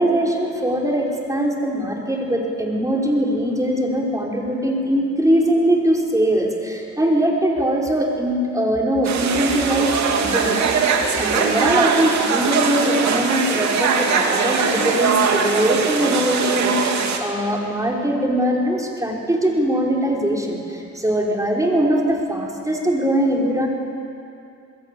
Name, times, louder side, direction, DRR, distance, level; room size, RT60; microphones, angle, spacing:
voice 1, 0.0-23.7, right 1 dB, 10° right, -1 dB, 5.4 m, -21 dB
sound 1, 9.0-17.2, right 5 dB, 65° right, 3.0 m, -21 dB
27.0 x 21.0 x 8.7 m, 2.6 s
cardioid pair, 90°, 30 cm